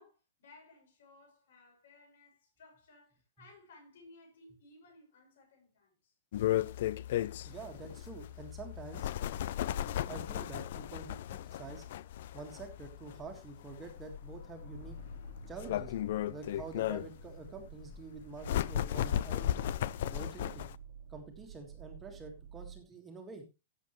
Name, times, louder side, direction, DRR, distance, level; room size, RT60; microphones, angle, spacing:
voice 1, 0.0-6.1, left 2 dB, 70° left, 6.8 m, -59 dB
sound 1, 6.3-20.8, left 12 dB, 50° left, 0.5 m, -36 dB
voice 2, 7.4-9.1 10.0-11.8 12.3-15.0 15.5-15.9 16.3-19.5 20.1-20.7 21.1-23.4, right 4 dB, 10° right, 1.8 m, -47 dB
sound 2, 14.6-22.8, right 8 dB, 60° right, 1.6 m, -52 dB
15.0 x 7.5 x 3.1 m
supercardioid pair, 180°, 0 cm